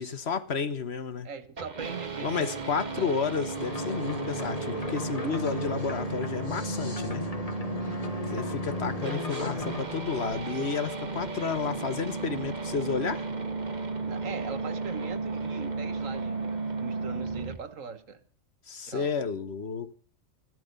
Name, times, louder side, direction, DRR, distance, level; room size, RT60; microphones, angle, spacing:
voice 1, 0.0-1.3 2.2-7.2 8.3-13.2 18.7-19.9, left 5 dB, 55° left, 1.3 m, -31 dB
voice 2, 1.2-3.2 7.8-8.0 14.0-18.2 18.9-19.1, right 6 dB, 75° right, 1.7 m, -41 dB
sound 1, 1.6-17.6, right 3 dB, 35° right, 1.3 m, -34 dB
sound 2, 3.5-9.9, left 3 dB, 30° left, 1.3 m, -36 dB
14.0 x 13.0 x 5.2 m
omnidirectional pair, 1.4 m